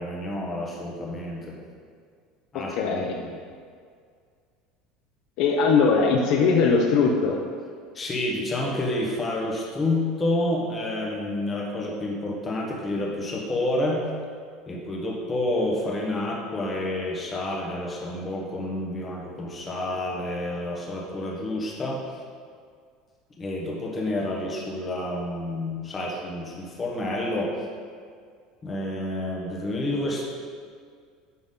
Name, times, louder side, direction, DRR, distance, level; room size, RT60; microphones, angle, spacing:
voice 1, 0.0-1.6 2.5-3.4 7.9-14.0 14.7-22.2 23.4-27.6 28.6-30.2, left 1 dB, 20° left, -2 dB, 1.3 m, -29 dB
voice 2, 2.5-3.2 5.4-7.4, left 5 dB, 55° left, 1 dB, 0.8 m, -21 dB
9.8 x 5.8 x 3.9 m, 2.1 s
cardioid pair, 165°, 0 cm